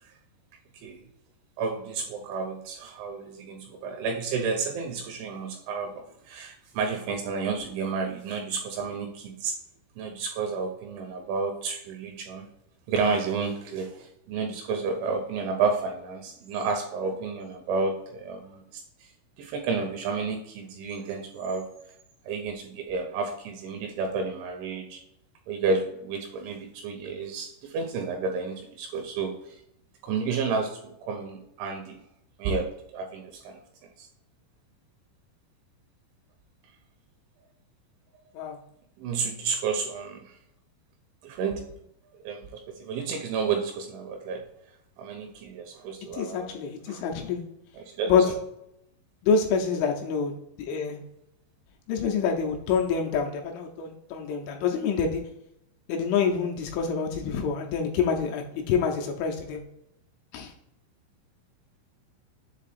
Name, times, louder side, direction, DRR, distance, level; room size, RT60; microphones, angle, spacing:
voice 1, 1.6-9.5 10.0-12.4 12.9-18.6 19.4-21.7 22.3-25.0 25.5-29.6 30.0-30.7 31.0-32.0 32.4-33.6 34.0-34.1 39.0-40.2 41.2-41.6 42.2-44.4 45.0-46.6 46.9-47.0 47.8-48.1, right 4 dB, 80° right, 4 dB, 2.8 m, -31 dB
voice 2, 46.1-47.4 48.1-48.2 49.2-51.0 51.9-55.2 55.9-59.6 60.3-60.5, left 6 dB, 80° left, 2 dB, 2.9 m, -26 dB
7.5 x 3.4 x 4.1 m, 0.79 s
omnidirectional pair, 5.9 m